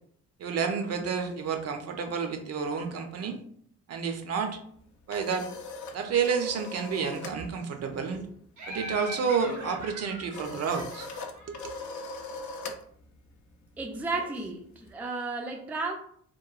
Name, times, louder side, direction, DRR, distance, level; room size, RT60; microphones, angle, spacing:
voice 1, 0.4-3.4 3.9-4.6 5.1-5.5 5.9-8.3 8.7-11.1 11.5-11.7, right 6 dB, 55° right, 6 dB, 0.5 m, -30 dB
sound 1, 4.7-7.4 7.7-8.0 8.2-14.9, left 3 dB, 70° left, 0.5 m, -42 dB
Laughter, 8.6-12.2, right 1 dB, 85° right, 0.9 m, -42 dB
voice 2, 13.8-15.9, right 3 dB, 5° right, 2 dB, 0.3 m, -33 dB
2.9 x 2.2 x 2.3 m, 0.63 s
cardioid pair, 90°, 30 cm